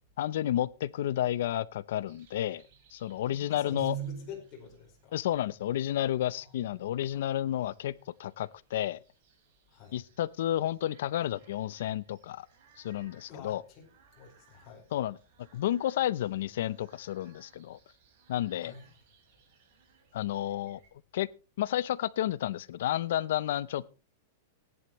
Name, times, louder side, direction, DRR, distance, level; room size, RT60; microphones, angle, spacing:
voice 1, 0.2-2.6 2.9-4.0 5.1-9.0 9.9-12.5 12.8-13.6 14.9-15.2 15.5-17.8 18.3-18.7 20.1-21.3 21.6-23.9, left 12 dB, 60° left, 0.6 m, -31 dB
sound 1, 2.1-20.9, right 8 dB, 40° right, 4.9 m, -51 dB
voice 2, 3.5-5.1 9.7-10.0 13.3-13.8 14.1-14.8 18.6-18.9, left 6 dB, 25° left, 4.7 m, -47 dB
18.0 x 10.5 x 3.1 m
supercardioid pair, 170°, 0 cm